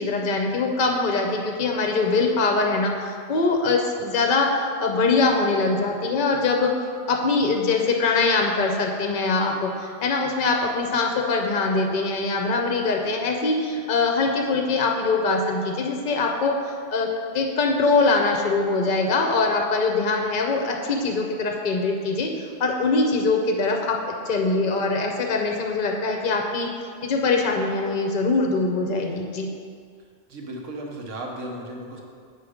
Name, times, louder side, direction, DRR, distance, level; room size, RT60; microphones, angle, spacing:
voice 1, 0.0-6.7 7.1-17.1 17.3-26.7 27.0-29.5, left 3 dB, 50° left, 2 dB, 0.7 m, -23 dB
voice 2, 30.3-32.0, right 1 dB, 75° right, 0 dB, 1.3 m, -35 dB
7.4 x 4.2 x 4.9 m, 2.2 s
omnidirectional pair, 1.3 m